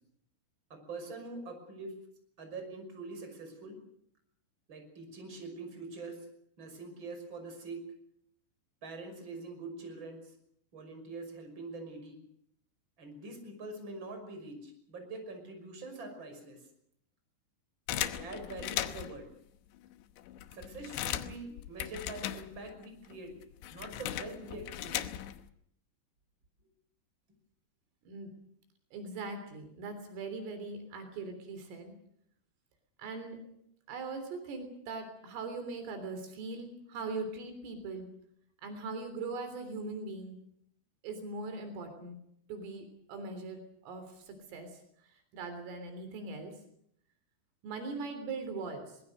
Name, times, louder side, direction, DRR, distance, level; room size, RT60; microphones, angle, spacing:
voice 1, 0.7-1.9 2.4-3.8 4.7-6.2 6.6-7.8 8.8-10.3 10.7-12.2 13.0-16.7 18.0-19.3 20.5-23.3 23.7-25.1, right 3 dB, 25° right, 4 dB, 6.1 m, -44 dB
sound 1, 17.9-19.2 19.9-20.0 20.2-22.9 23.1-25.5, left 12 dB, 75° left, 2.9 m, -38 dB
voice 2, 28.9-31.9 33.0-33.4 33.9-38.1 38.6-40.4 41.0-42.2 42.5-44.8 45.3-46.5 47.6-49.0, right 3 dB, 75° right, 7 dB, 6.0 m, -40 dB
24.0 x 21.0 x 6.5 m, 0.71 s
omnidirectional pair, 5.9 m